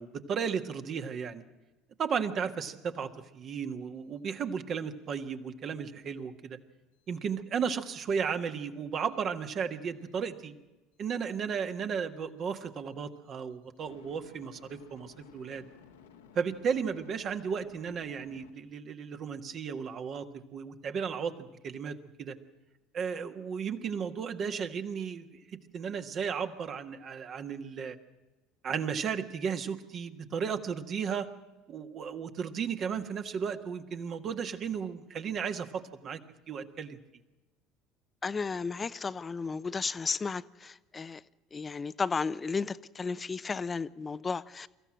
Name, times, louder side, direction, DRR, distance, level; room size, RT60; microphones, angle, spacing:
voice 1, 0.0-1.4 2.0-6.6 7.1-10.6 11.0-15.6 16.3-20.3 20.5-22.3 22.9-25.4 25.7-28.0 28.6-31.3 31.7-36.2 36.5-37.0, right 6 dB, 45° right, 7 dB, 1.6 m, -34 dB
sound 1, 9.0-9.2 13.9-18.5, left 7 dB, 85° left, 1.5 m, -56 dB
voice 2, 38.2-41.2 41.5-44.7, left 4 dB, 25° left, 16 dB, 0.7 m, -33 dB
24.0 x 14.5 x 7.6 m, 1.1 s
hypercardioid pair, 65°, 0 cm